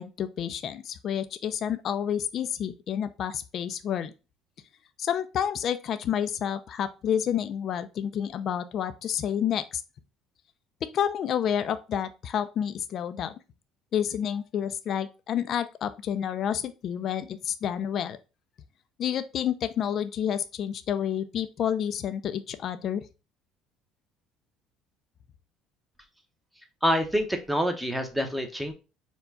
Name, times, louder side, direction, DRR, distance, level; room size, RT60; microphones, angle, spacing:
voice 1, 0.0-4.1 5.0-9.8 10.8-13.3 13.9-18.2 19.0-23.0, left 9 dB, 50° left, 12 dB, 0.4 m, -29 dB
voice 2, 26.8-28.7, equal, 5° right, 5 dB, 0.9 m, -26 dB
4.4 x 2.3 x 4.0 m, 0.30 s
supercardioid pair, 95°, 0 cm